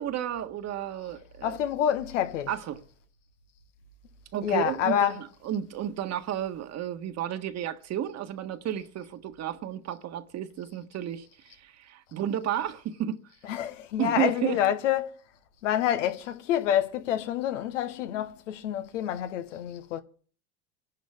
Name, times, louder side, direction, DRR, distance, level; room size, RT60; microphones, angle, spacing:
voice 1, 0.0-1.6 2.5-2.8 4.3-13.2 14.0-14.6, right 10 dB, 45° right, 1.5 m, -32 dB
voice 2, 1.4-2.5 4.4-5.2 13.5-15.1 15.6-20.0, left 10 dB, 85° left, 1.4 m, -27 dB
27.0 x 11.5 x 3.7 m
supercardioid pair, 100°, 36 cm